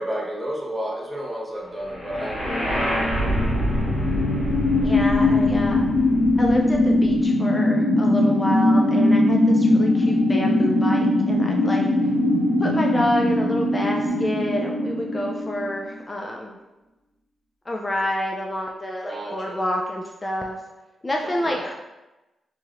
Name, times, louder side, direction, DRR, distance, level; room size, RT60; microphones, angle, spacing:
voice 1, 0.0-3.3 19.0-19.6 21.2-21.6, equal, 25° right, -2 dB, 0.8 m, -32 dB
sound 1, 2.0-16.0, left 1 dB, 65° left, 1.4 m, -20 dB
voice 2, 4.8-5.9 6.4-11.9 12.6-16.6 17.7-20.6 21.0-21.8, left 1 dB, 25° left, 0 dB, 0.4 m, -28 dB
3.0 x 2.7 x 2.5 m, 1.0 s
cardioid pair, 60°, 0 cm